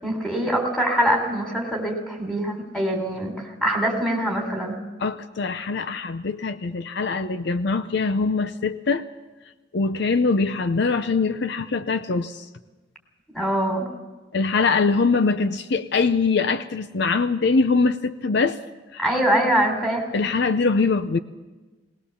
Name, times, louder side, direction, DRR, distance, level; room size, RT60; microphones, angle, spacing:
voice 1, 0.0-3.3 3.6-4.8 13.3-13.9 19.0-20.1, right 1 dB, 5° left, 3 dB, 3.5 m, -23 dB
voice 2, 5.0-9.1 9.7-12.5 14.3-18.6 18.9-19.0 20.1-21.2, left 4 dB, 65° left, 11 dB, 0.6 m, -23 dB
20.0 x 19.0 x 7.1 m, 1.2 s
head